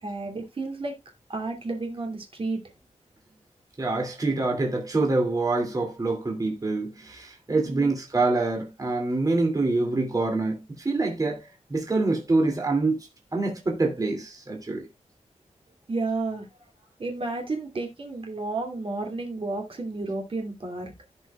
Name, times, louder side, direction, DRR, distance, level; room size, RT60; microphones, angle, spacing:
voice 1, 0.0-1.0 1.3-2.6 7.6-7.9 15.9-16.5 17.0-20.9, right 3 dB, 45° right, 2.5 m, -31 dB
voice 2, 3.8-14.9, right 3 dB, 30° right, 2.5 m, -26 dB
16.0 x 5.5 x 2.3 m
wide cardioid pair, 150°, 12 cm